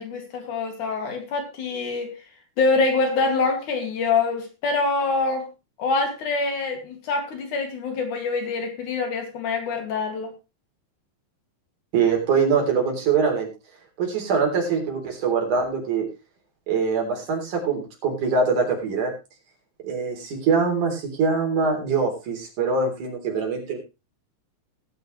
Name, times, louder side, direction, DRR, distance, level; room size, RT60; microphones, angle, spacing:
voice 1, 0.0-2.1 2.6-5.5 5.8-10.3, left 3 dB, 80° left, 4 dB, 3.9 m, -25 dB
voice 2, 11.9-13.5 14.0-16.1 16.7-19.1 19.8-23.8, right 5 dB, 80° right, 2 dB, 5.0 m, -23 dB
18.5 x 9.4 x 3.2 m, 0.28 s
omnidirectional pair, 3.5 m